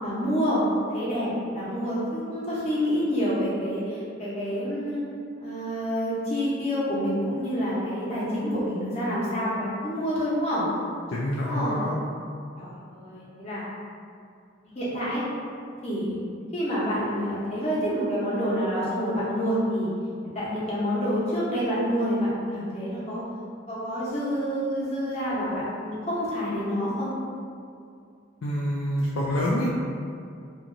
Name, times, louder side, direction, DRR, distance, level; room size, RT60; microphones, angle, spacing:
voice 1, 0.0-0.6 0.9-5.0 5.4-10.6 11.5-11.8 12.6-13.6 14.7-15.2 15.8-16.2 16.5-19.9 20.3-23.2 23.7-27.1, equal, 35° left, -9 dB, 0.8 m, -28 dB
voice 2, 11.1-12.0 28.4-29.7, equal, 75° left, -6 dB, 0.4 m, -26 dB
2.9 x 2.5 x 2.5 m, 2.4 s
head